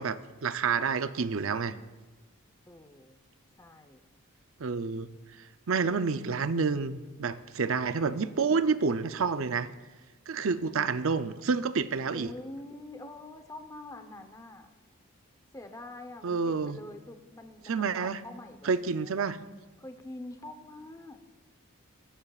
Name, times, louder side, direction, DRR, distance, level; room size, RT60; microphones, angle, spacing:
voice 1, 0.0-1.8 4.6-5.1 5.7-9.7 10.3-12.3 16.2-16.8 17.7-18.2 18.6-19.4, right 5 dB, 60° right, 12 dB, 0.6 m, -29 dB
voice 2, 2.7-3.2 3.6-4.0 12.1-14.7 15.5-19.1 19.8-21.2, left 2 dB, 15° left, 6 dB, 0.9 m, -45 dB
25.5 x 14.5 x 2.4 m, 1.2 s
head